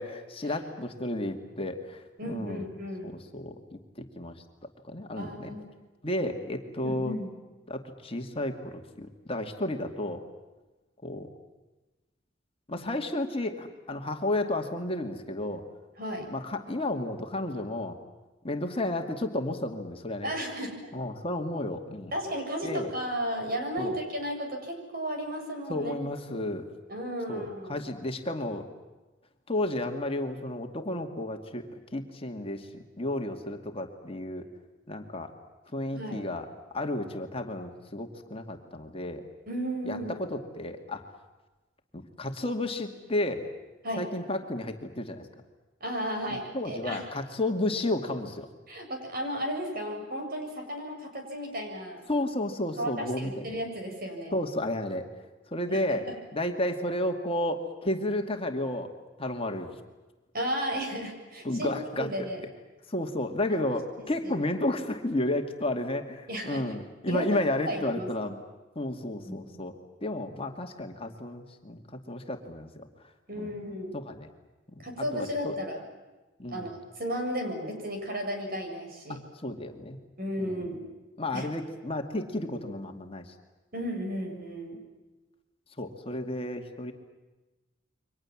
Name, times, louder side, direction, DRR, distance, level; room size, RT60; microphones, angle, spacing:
voice 1, 0.0-2.7 3.0-3.8 4.2-4.4 4.9-5.6 6.0-7.1 7.7-10.2 11.0-11.3 12.7-15.6 16.3-18.0 18.4-20.3 20.9-22.1 22.6-22.9 23.8-24.0 25.7-26.7 27.3-28.7 29.5-32.7 33.0-34.5 34.9-35.3 35.7-36.5 36.7-39.2 39.8-41.0 41.9-43.5 44.0-45.3 46.5-48.5 52.1-53.5 54.3-55.0 55.5-56.1 56.3-58.9 59.2-59.7 61.4-62.1 62.9-68.4 68.8-69.7 70.0-72.9 73.3-73.6 73.9-74.3 74.7-74.8 75.1-75.6 76.4-76.7 79.1-80.0 80.4-80.7 81.2-83.3 85.8-86.9, left 1 dB, 30° left, 5 dB, 2.3 m, -32 dB
voice 2, 2.2-3.1 5.2-5.7 6.8-7.3 12.8-12.9 16.0-16.3 20.2-20.9 22.1-25.9 26.3-26.5 26.9-27.8 35.9-36.3 39.5-40.1 43.8-44.1 45.8-47.0 48.7-52.0 52.8-54.4 55.7-56.0 60.3-62.4 63.5-63.6 64.2-64.3 66.3-66.6 67.1-67.4 67.6-68.3 69.2-69.6 73.3-74.0 74.8-75.8 76.5-79.2 80.2-80.9 81.3-81.5 83.7-84.8, equal, 55° right, 3 dB, 7.5 m, -34 dB
29.5 x 24.5 x 7.4 m, 1.2 s
head